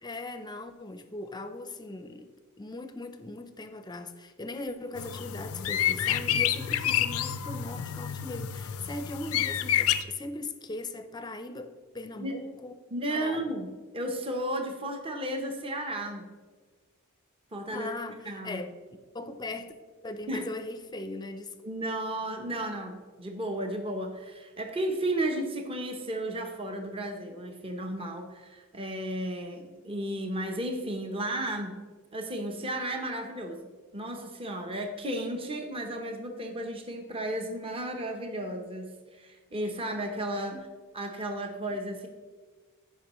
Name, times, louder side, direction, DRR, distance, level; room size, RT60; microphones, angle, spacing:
voice 1, 0.0-2.3 2.6-12.7 13.1-13.5 17.7-18.7 19.1-19.7 20.0-21.5 40.5-40.6 41.7-41.8, left 2 dB, 20° left, 9 dB, 0.6 m, -39 dB
sound 1, 5.0-10.0, left 10 dB, 75° left, 0.5 m, -29 dB
voice 2, 12.9-16.3 17.5-17.9 18.2-18.6 20.3-20.5 21.6-31.8 32.1-40.6 40.9-42.1, right 1 dB, 25° right, 3 dB, 0.8 m, -34 dB
15.0 x 5.4 x 3.0 m, 1.4 s
head